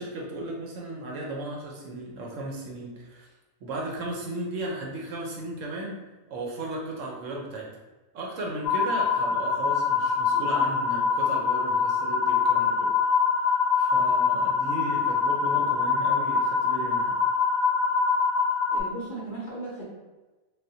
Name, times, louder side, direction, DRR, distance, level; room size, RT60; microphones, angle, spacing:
voice 1, 0.0-3.3 3.6-6.0 6.3-7.7 8.1-12.9 13.8-17.2, right 2 dB, 70° right, -1 dB, 1.0 m, -35 dB
sound 1, 8.6-18.8, left 5 dB, 85° left, 1.1 m, -24 dB
voice 2, 18.7-19.8, right 2 dB, 50° left, -6 dB, 0.7 m, -36 dB
3.4 x 2.4 x 2.7 m, 1.2 s
omnidirectional pair, 1.5 m